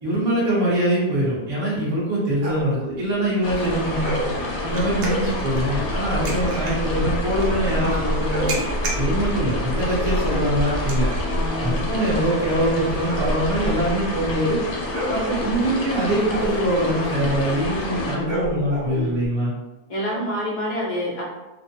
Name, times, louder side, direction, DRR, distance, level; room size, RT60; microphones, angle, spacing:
voice 1, 0.0-4.2 4.6-8.6 9.0-11.1 11.6-14.6 15.1-19.5, right 1 dB, 25° right, -8 dB, 0.6 m, -23 dB
sound 1, 2.3-2.7 4.0-4.4 4.9-5.3 8.0-8.7 11.2-19.3, equal, 45° right, 1.1 m, -31 dB
sound 2, 3.0-14.3, right 3 dB, 80° right, 1.1 m, -39 dB
sound 3, 3.4-18.2, left 1 dB, 70° left, 1.0 m, -27 dB
voice 2, 7.8-8.3 11.3-11.9 18.0-18.3 18.9-19.2 19.9-21.2, equal, 40° left, -6 dB, 0.4 m, -29 dB
2.6 x 2.1 x 2.7 m, 1.1 s
omnidirectional pair, 1.7 m